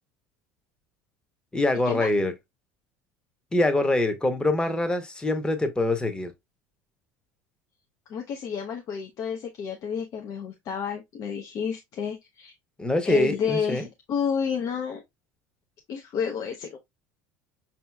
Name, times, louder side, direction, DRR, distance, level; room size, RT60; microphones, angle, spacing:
voice 1, 1.5-2.3 3.5-6.3 12.8-13.9, left 2 dB, 10° left, 0.8 m, -24 dB
voice 2, 8.1-12.5 13.1-15.0 15.9-16.8, left 7 dB, 55° left, 0.6 m, -30 dB
5.4 x 2.8 x 2.2 m
supercardioid pair, 100°, 7 cm